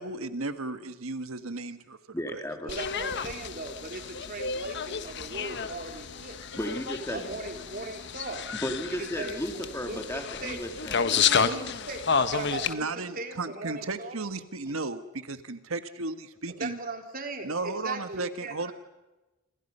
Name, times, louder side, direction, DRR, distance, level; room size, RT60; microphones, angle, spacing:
voice 1, 0.0-2.0 2.3-2.4 12.7-16.8 17.4-18.7, right 3 dB, 90° right, 10 dB, 1.5 m, -34 dB
voice 2, 2.1-2.7 6.6-7.4 8.5-11.5, equal, 15° left, 5 dB, 2.8 m, -35 dB
voice 3, 2.6-6.4 7.1-8.5 9.0-10.6 11.2-12.9 13.1-14.2 16.6-18.7, right 2 dB, 45° right, 4 dB, 3.7 m, -38 dB
sound 1, 2.7-12.7, left 6 dB, 55° left, 1.2 m, -31 dB
27.5 x 27.5 x 5.5 m, 1.1 s
head